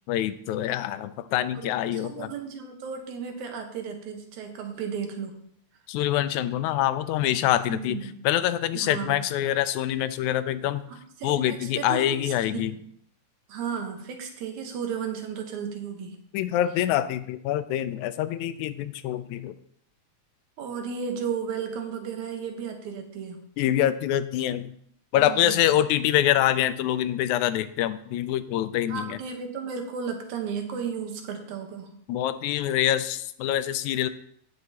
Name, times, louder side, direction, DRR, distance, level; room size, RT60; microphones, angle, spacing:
voice 1, 0.1-2.3 5.9-10.8 11.2-12.7 16.3-19.6 23.6-24.8 25.1-29.2 32.1-34.1, left 12 dB, 85° left, 12 dB, 2.0 m, -25 dB
voice 2, 1.6-5.4 7.7-8.2 8.7-9.2 10.9-12.8 13.5-16.2 20.6-23.4 25.2-25.6 28.9-31.9, right 6 dB, 80° right, 4 dB, 2.6 m, -34 dB
17.0 x 6.0 x 2.9 m, 0.69 s
omnidirectional pair, 3.3 m